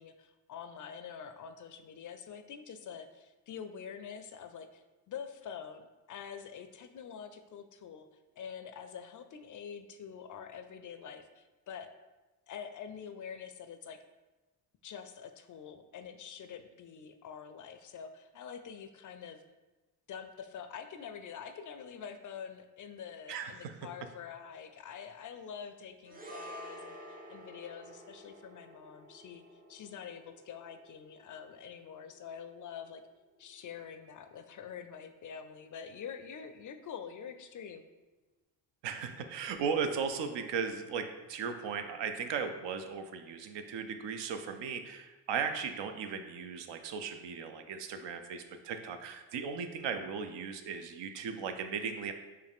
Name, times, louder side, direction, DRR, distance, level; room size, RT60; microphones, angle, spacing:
voice 1, 0.0-8.1 8.4-11.9 12.5-14.0 14.8-19.4 20.1-29.4 29.7-33.0 33.4-37.9, left 7 dB, 45° left, 8 dB, 0.4 m, -46 dB
voice 2, 23.3-23.7 38.8-52.1, right 6 dB, 70° right, 7 dB, 0.6 m, -37 dB
sound 1, 26.0-34.5 34.8-35.0, equal, 20° right, 0.5 m, -52 dB
4.7 x 2.6 x 3.5 m, 1.2 s
supercardioid pair, 75°, 46 cm